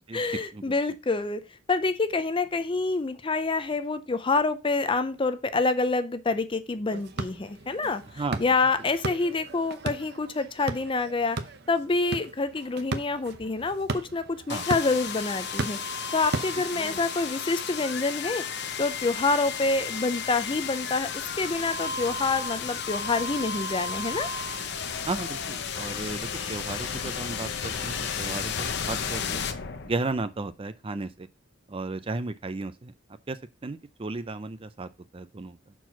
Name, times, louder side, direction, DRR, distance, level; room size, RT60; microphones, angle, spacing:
voice 1, 0.1-1.4 1.7-11.4 11.7-15.8 16.1-24.3, left 3 dB, 25° left, 0.5 m, -27 dB
sound 1, 6.9-17.1, right 3 dB, 50° right, 0.8 m, -37 dB
sound 2, 14.5-30.3, left 6 dB, 55° left, 0.7 m, -33 dB
sound 3, 24.2-29.2, left 6 dB, 75° left, 1.4 m, -42 dB
voice 2, 25.1-28.5 28.9-29.4 29.8-31.3 31.7-32.9 33.3-35.7, right 3 dB, 25° right, 0.4 m, -34 dB
6.0 x 4.6 x 5.7 m
head